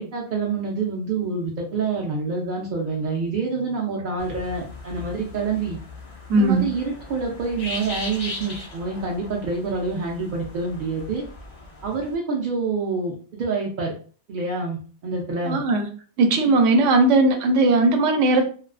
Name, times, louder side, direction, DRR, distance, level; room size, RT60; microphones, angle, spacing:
voice 1, 0.0-5.8 6.3-11.2 11.8-13.9 14.3-15.6, right 4 dB, 60° right, -2 dB, 0.5 m, -27 dB
sound 1, 4.2-12.1, left 3 dB, 55° left, 0.4 m, -38 dB
voice 2, 6.3-6.7 15.4-15.9 16.2-18.5, right 2 dB, 80° right, 6 dB, 0.9 m, -18 dB
2.4 x 2.3 x 2.3 m, 0.40 s
omnidirectional pair, 1.3 m